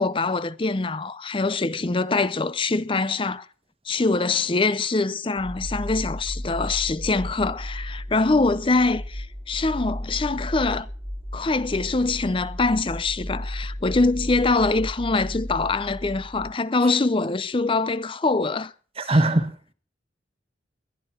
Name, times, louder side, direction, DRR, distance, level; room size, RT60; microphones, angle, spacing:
voice 1, 0.0-3.5 3.9-10.9 11.3-18.7 19.0-19.2, left 3 dB, 30° left, 0.6 m, -24 dB
sound 1, 5.4-16.5, equal, 5° left, 2.2 m, -34 dB
voice 2, 19.0-19.7, right 1 dB, 35° right, 1.3 m, -21 dB
20.5 x 10.5 x 4.5 m
head